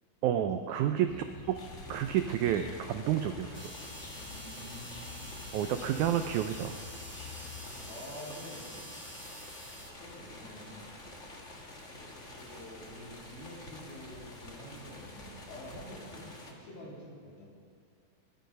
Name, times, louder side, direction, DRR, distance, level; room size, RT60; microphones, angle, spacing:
voice 1, 0.2-1.1 1.5-1.6 1.9-3.7 5.5-6.8, right 10 dB, 90° right, 8 dB, 1.7 m, -30 dB
sound 1, 1.1-7.8, left 5 dB, 50° left, 1.7 m, -49 dB
sound 2, 1.5-16.5, left 1 dB, 35° left, 1.1 m, -49 dB
sound 3, 3.5-9.9, equal, 5° left, 0.9 m, -47 dB
voice 2, 4.1-5.6 7.7-8.8 9.8-10.9 11.9-17.4, left 1 dB, 80° left, -4 dB, 5.3 m, -48 dB
22.0 x 11.5 x 5.4 m, 2.3 s
omnidirectional pair, 4.2 m